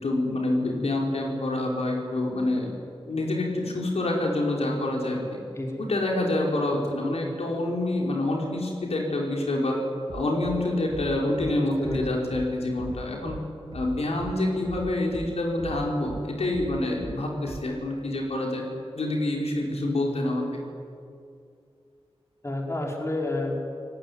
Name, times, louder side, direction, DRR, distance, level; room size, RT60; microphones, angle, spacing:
voice 1, 0.0-2.7 3.1-5.2 5.8-9.8 10.1-13.4 13.7-18.6 18.9-20.5, left 2 dB, 80° left, -1 dB, 5.2 m, -27 dB
Bass drum, 10.1-10.6 10.9-11.5 11.8-12.5 12.8-13.4 13.7-14.3 14.7-15.3 15.6-16.2 16.5-17.1 17.5-17.6, right 3 dB, 45° right, 2.0 m, -38 dB
voice 2, 22.4-23.6, left 2 dB, 25° left, 0 dB, 4.4 m, -29 dB
29.0 x 18.5 x 9.7 m, 2.4 s
wide cardioid pair, 105°, 10 cm